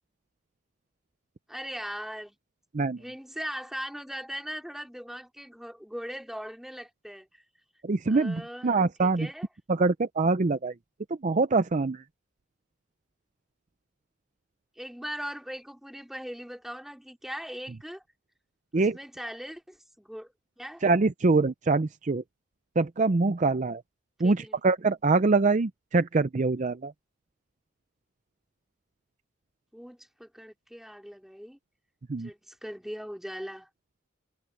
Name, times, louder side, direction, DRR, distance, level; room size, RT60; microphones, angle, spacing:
voice 1, 1.5-2.4 3.0-7.4 8.1-9.5 14.8-18.0 18.7-20.8 24.2-24.6 29.7-31.6 32.1-33.7, equal, ahead, 2.6 m, -40 dB
voice 2, 7.8-9.3 9.7-10.7 11.2-12.0 18.7-19.0 20.8-22.2 22.8-23.8 24.2-26.9 32.1-32.3, right 3 dB, 40° right, 0.5 m, -24 dB
head